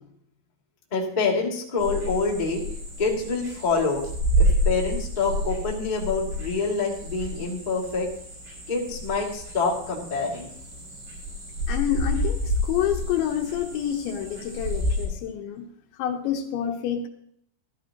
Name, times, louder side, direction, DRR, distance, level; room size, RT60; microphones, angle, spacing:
voice 1, 0.9-2.6 3.0-4.0 4.4-8.1 8.7-10.5, left 4 dB, 20° left, -3 dB, 1.2 m, -26 dB
sound 1, 1.8-15.1, equal, 85° right, 8.3 m, -29 dB
voice 2, 11.7-15.7 16.0-17.1, left 10 dB, 75° left, 4 dB, 3.1 m, -28 dB
14.5 x 13.5 x 2.9 m, 0.67 s
omnidirectional pair, 5.7 m